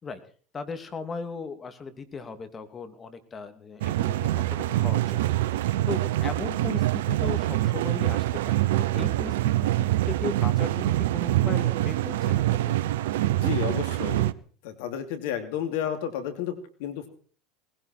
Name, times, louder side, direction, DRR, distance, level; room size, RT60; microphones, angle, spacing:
voice 1, 0.5-12.8, left 5 dB, 25° left, 9 dB, 2.9 m, -38 dB
sound 1, 3.8-14.3, right 15 dB, 75° right, 0.7 m, -25 dB
voice 2, 13.2-14.3 14.6-17.1, left 9 dB, 70° left, 9 dB, 2.8 m, -32 dB
19.5 x 16.0 x 4.5 m, 0.43 s
hypercardioid pair, 85°, 0 cm